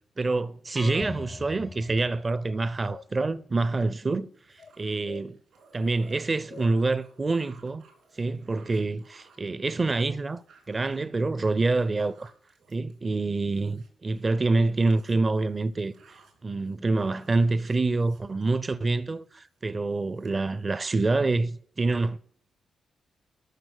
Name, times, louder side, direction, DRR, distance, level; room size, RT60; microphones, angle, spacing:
voice 1, 0.2-4.3 4.8-5.3 5.7-7.8 8.2-10.4 10.7-12.3 12.7-22.2, right 3 dB, 35° right, 0.6 m, -26 dB
sound 1, 0.8-2.8, left 2 dB, 25° left, 0.5 m, -40 dB
sound 2, 2.5-3.1 4.6-5.2 6.1-6.7, left 6 dB, 65° left, 0.7 m, -47 dB
sound 3, 4.3-14.2 14.5-18.9 19.3-19.6 19.9-20.7, right 5 dB, 80° right, 3.4 m, -60 dB
13.5 x 6.0 x 6.4 m
supercardioid pair, 50°, 0 cm